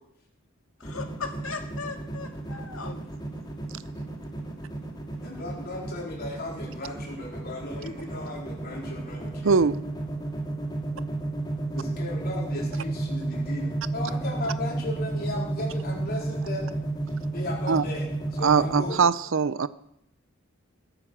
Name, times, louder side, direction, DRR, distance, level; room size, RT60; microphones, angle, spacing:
voice 1, 0.8-3.0, left 4 dB, 85° left, 2.0 m, -37 dB
sound 1, 0.8-18.9, right 2 dB, 20° left, 2.6 m, -32 dB
voice 2, 5.2-9.6 11.7-16.7 17.3-19.0, left 1 dB, 50° left, 4.1 m, -36 dB
voice 3, 9.4-9.8 17.7-17.8 18.4-19.7, right 5 dB, 65° right, 0.6 m, -21 dB
21.0 x 8.3 x 6.3 m
head